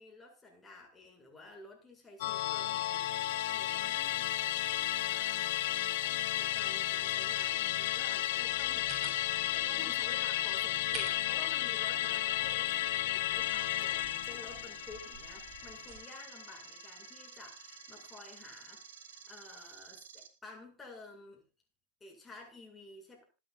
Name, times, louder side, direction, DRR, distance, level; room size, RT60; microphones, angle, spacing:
voice 1, 0.0-4.4 5.1-5.7 6.3-18.8 19.3-21.4 22.0-23.2, left 3 dB, 15° left, 0 dB, 7.4 m, -52 dB
Musical instrument, 2.2-16.9 17.2-17.3, left 14 dB, 55° left, 1.2 m, -33 dB
sound 1, 8.4-16.0, right 4 dB, 25° right, 7.5 m, -51 dB
sound 2, 13.4-20.3, right 8 dB, 65° right, 2.0 m, -52 dB
26.5 x 10.0 x 2.6 m, 0.29 s
figure-of-eight pair, 100°, 0 cm